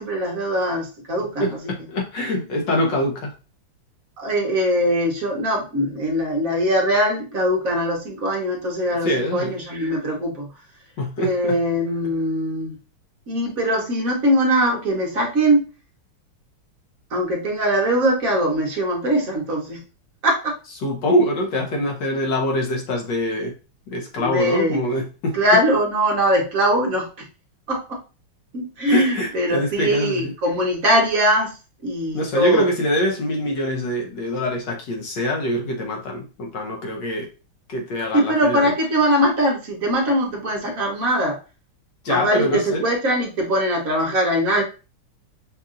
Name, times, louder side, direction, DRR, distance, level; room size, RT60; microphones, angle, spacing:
voice 1, 0.0-1.6 4.2-10.5 11.2-12.7 13.3-15.7 17.1-19.8 20.2-20.6 24.2-24.8 25.3-27.3 27.7-28.0 28.5-31.6 31.8-32.6 38.1-41.4 42.1-44.6, equal, 50° right, 0 dB, 1.1 m, -21 dB
voice 2, 1.4-3.3 9.0-9.5 11.0-11.6 20.8-23.5 23.9-25.4 28.9-30.3 32.1-37.3 37.7-38.7 42.0-42.8, equal, 65° left, 0 dB, 1.4 m, -24 dB
5.6 x 2.6 x 2.4 m, 0.32 s
omnidirectional pair, 2.3 m